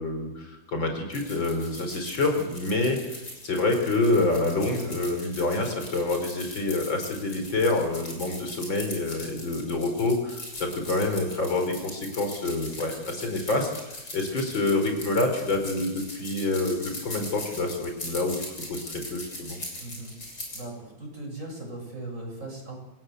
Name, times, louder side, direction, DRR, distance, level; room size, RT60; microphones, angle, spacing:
voice 1, 0.0-3.1 3.4-18.4 18.7-19.6, left 2 dB, 70° left, 4 dB, 5.2 m, -27 dB
sound 1, 1.1-20.6, left 1 dB, 50° left, 7.1 m, -40 dB
voice 2, 19.8-20.2 20.5-22.8, right 2 dB, 40° right, 0 dB, 8.1 m, -38 dB
27.5 x 19.5 x 8.1 m, 0.96 s
omnidirectional pair, 2.2 m